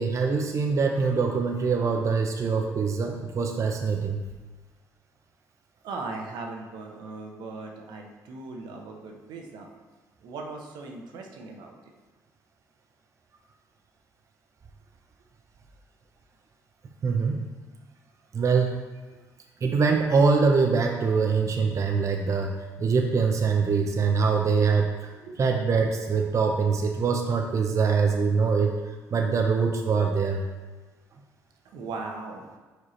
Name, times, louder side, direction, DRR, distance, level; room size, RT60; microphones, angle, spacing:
voice 1, 0.0-4.2 17.0-17.4 18.3-18.8 19.6-24.9 25.4-28.7 29.1-30.4, right 5 dB, 45° right, 2 dB, 0.6 m, -23 dB
voice 2, 5.8-9.7 10.2-11.9 25.2-25.4 31.6-32.5, right 3 dB, 75° right, 2 dB, 0.9 m, -38 dB
5.0 x 4.6 x 4.3 m, 1.3 s
supercardioid pair, 60°, 7 cm